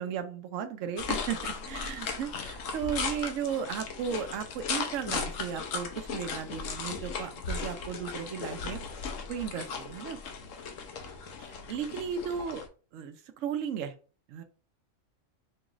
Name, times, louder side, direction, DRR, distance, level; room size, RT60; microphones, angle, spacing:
voice 1, 0.0-8.8 9.3-10.2 11.4-12.6 12.9-13.9 14.3-14.4, right 7 dB, 75° right, 7 dB, 1.0 m, -35 dB
sound 1, 1.0-12.7, left 5 dB, 75° left, 1.1 m, -37 dB
5.4 x 2.4 x 3.0 m, 0.37 s
omnidirectional pair, 1.4 m